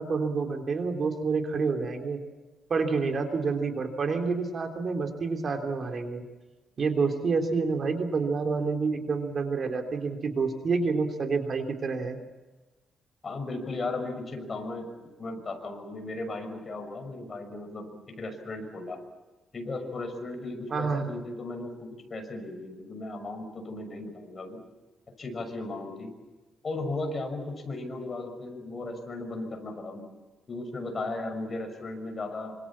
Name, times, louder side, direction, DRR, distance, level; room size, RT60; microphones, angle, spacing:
voice 1, 0.0-2.2 2.7-6.2 6.8-12.2 20.7-21.1, right 4 dB, 45° right, 4 dB, 3.2 m, -28 dB
voice 2, 13.2-19.0 19.5-24.6 25.2-26.1 26.6-30.0 30.5-32.6, left 2 dB, 35° left, 5 dB, 6.2 m, -36 dB
27.5 x 26.0 x 7.4 m, 1.2 s
cardioid pair, 125°, 0 cm